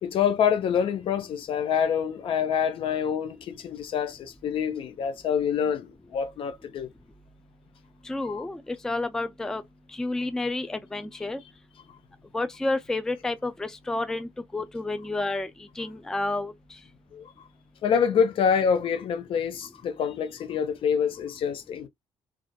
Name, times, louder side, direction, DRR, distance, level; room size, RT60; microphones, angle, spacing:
voice 1, 0.0-6.9 8.2-8.4 17.1-17.3 17.8-21.9, left 7 dB, 60° left, 0.5 m, -26 dB
voice 2, 8.1-9.6 9.9-11.4 12.3-15.5 15.8-16.5, left 2 dB, 5° left, 0.3 m, -30 dB
2.4 x 2.4 x 2.2 m
supercardioid pair, 70°, 11 cm